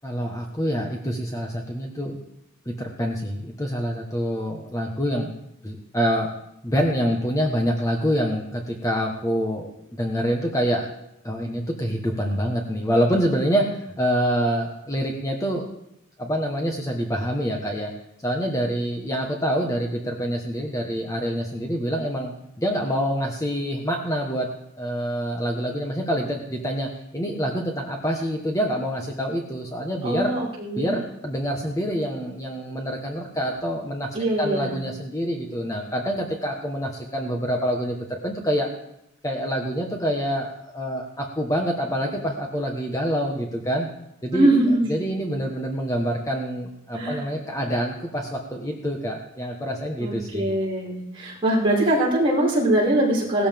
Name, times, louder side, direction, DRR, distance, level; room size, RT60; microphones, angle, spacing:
voice 1, 0.0-2.2 2.6-5.3 5.6-6.3 6.6-10.9 11.2-15.7 16.2-17.9 18.2-24.5 24.8-30.3 30.8-34.1 34.4-38.7 39.2-43.9 44.2-44.5 44.9-50.5, equal, 15° left, 1 dB, 1.3 m, -26 dB
voice 2, 30.0-31.0 34.1-34.8 44.3-44.9 46.9-47.2 50.0-53.5, right 1 dB, 25° right, -7 dB, 5.5 m, -22 dB
18.5 x 13.5 x 3.6 m, 0.80 s
head